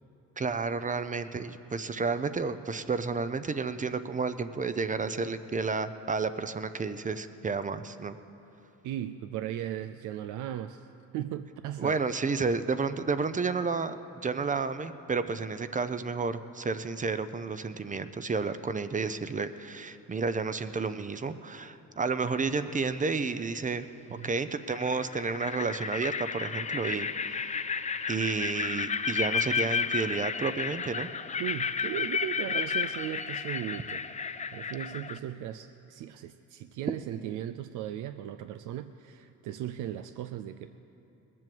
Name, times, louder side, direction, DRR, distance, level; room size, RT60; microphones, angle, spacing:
voice 1, 0.4-8.2 11.8-27.4 28.1-31.1, right 4 dB, 25° right, 11 dB, 0.5 m, -31 dB
voice 2, 8.8-10.9 11.1-12.0 24.2-24.3 31.4-34.0 34.5-40.8, right 11 dB, 90° right, 10 dB, 0.5 m, -37 dB
sound 1, 22.3-22.7 24.2-24.3 24.7-35.2, left 6 dB, 25° left, 0.5 m, -32 dB
19.5 x 7.7 x 7.7 m, 2.9 s
cardioid pair, 90°, 30 cm